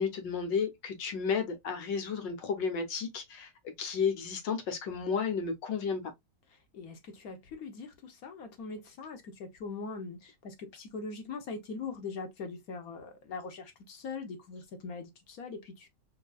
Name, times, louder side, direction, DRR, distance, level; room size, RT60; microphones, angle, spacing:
voice 1, 0.0-3.5 3.8-6.0, left 6 dB, 90° left, 1.7 m, -32 dB
voice 2, 6.5-15.9, left 4 dB, 60° left, 1.3 m, -42 dB
4.4 x 2.7 x 2.3 m
omnidirectional pair, 1.9 m